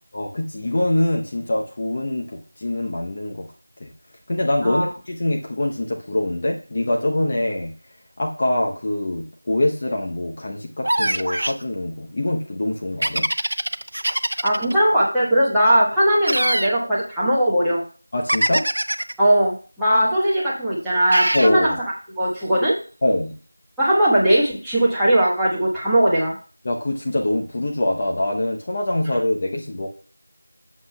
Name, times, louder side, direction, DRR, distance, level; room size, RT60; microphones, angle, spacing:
voice 1, 0.1-3.5 3.8-3.9 4.3-7.7 8.2-13.2 18.1-18.6 21.3-21.7 23.0-23.3 26.6-29.9, left 1 dB, 30° left, 1 dB, 0.8 m, -24 dB
sound 1, 10.8-11.6 13.0-14.7 16.2-16.7 18.3-19.1 21.1-21.5, right 1 dB, 60° right, 0.7 m, -23 dB
voice 2, 14.4-17.8 19.2-21.7 22.2-22.8 23.8-26.4, right 1 dB, ahead, -12 dB, 1.3 m, -19 dB
12.0 x 7.4 x 2.3 m, 0.39 s
figure-of-eight pair, 175°, 0 cm